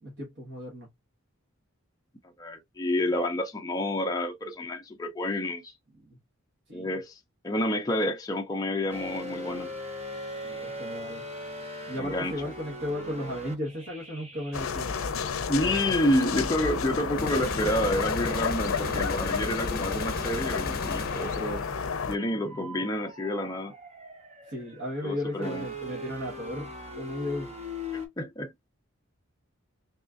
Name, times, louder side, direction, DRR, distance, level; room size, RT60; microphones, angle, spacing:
voice 1, 0.0-0.9 5.9-6.2 6.7-6.9 10.4-11.2 11.9-14.9 24.5-27.5, left 1 dB, 55° right, 1.3 m, -35 dB
voice 2, 2.4-5.7 6.7-9.7 12.0-12.3 15.5-21.7 22.1-23.7 25.0-25.6 28.2-28.5, left 1 dB, 20° left, 0.5 m, -29 dB
sound 1, 8.9-15.5 15.9-28.1, left 1 dB, 30° right, 0.8 m, -42 dB
sound 2, 14.5-22.2, left 5 dB, 85° left, 0.5 m, -31 dB
sound 3, 17.2-21.9, left 3 dB, 45° left, 0.8 m, -35 dB
3.6 x 3.0 x 2.4 m
head